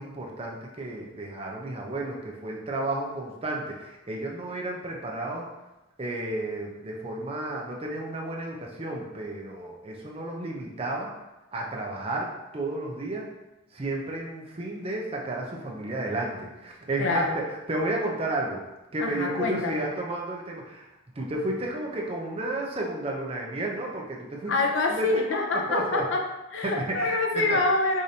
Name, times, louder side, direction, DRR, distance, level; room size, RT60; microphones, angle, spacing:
voice 1, 0.0-5.5 6.0-11.1 11.5-13.3 13.7-17.4 17.7-18.6 18.9-20.9 21.2-24.5 24.8-25.1 25.7-26.0 26.6-27.6, right 2 dB, 30° right, -1 dB, 0.5 m, -32 dB
voice 2, 17.0-17.4 19.0-19.8 24.5-26.2 26.5-28.0, left 3 dB, 65° left, 2 dB, 0.5 m, -26 dB
4.8 x 2.6 x 2.7 m, 1.0 s
head